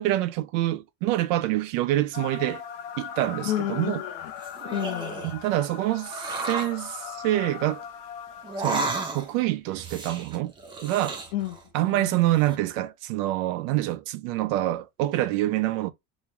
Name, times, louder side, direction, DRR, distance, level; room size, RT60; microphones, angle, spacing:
voice 1, 0.0-2.6 3.0-4.0 5.3-7.8 8.6-10.5 10.8-11.2 11.7-15.9, right 15 dB, 65° right, 0.5 m, -26 dB
sound 1, 2.1-9.4, left 8 dB, 55° left, 0.6 m, -39 dB
voice 2, 3.4-4.3 4.7-5.4 11.3-12.3, left 14 dB, 85° left, 0.9 m, -32 dB
sound 2, 4.2-5.4 6.1-6.8 8.4-9.4 9.7-11.7 12.0-12.5, right 3 dB, 10° right, 0.4 m, -33 dB
3.1 x 2.7 x 3.3 m
cardioid pair, 155°, 42 cm